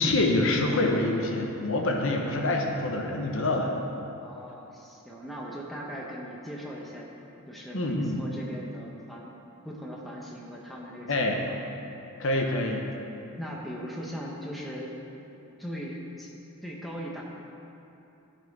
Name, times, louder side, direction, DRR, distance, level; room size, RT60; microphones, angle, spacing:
voice 1, 0.0-3.7 7.7-8.2 11.1-11.4 12.2-12.9, left 2 dB, 65° left, 1 dB, 0.8 m, -26 dB
voice 2, 4.2-7.1 7.5-9.3 9.6-11.6 12.4-12.8 13.4-14.9 15.6-16.3 16.6-17.2, equal, ahead, -4 dB, 0.8 m, -39 dB
12.5 x 4.5 x 4.7 m, 2.9 s
head